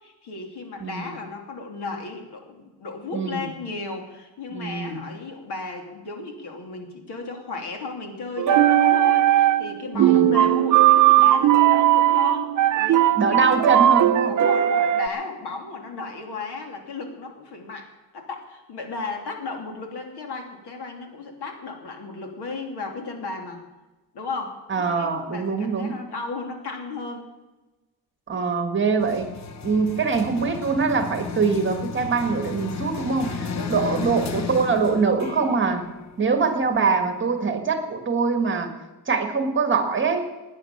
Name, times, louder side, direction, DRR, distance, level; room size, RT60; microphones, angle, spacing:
voice 1, 0.0-13.5 14.2-23.6 24.1-27.3 33.5-34.3, left 3 dB, 80° left, 3 dB, 3.0 m, -34 dB
voice 2, 0.8-1.1 3.1-3.5 4.5-5.0 9.9-10.3 13.2-14.3 24.7-26.0 28.3-29.3 29.6-35.9 36.2-38.7 39.1-40.2, right 4 dB, 30° right, 6 dB, 1.6 m, -23 dB
sound 1, 8.4-9.7 10.0-15.1, right 12 dB, 50° right, 0.6 m, -18 dB
sound 2, 29.0-37.0, left 5 dB, 45° left, 0.9 m, -34 dB
17.0 x 9.6 x 7.2 m, 1.1 s
wide cardioid pair, 180°, 40 cm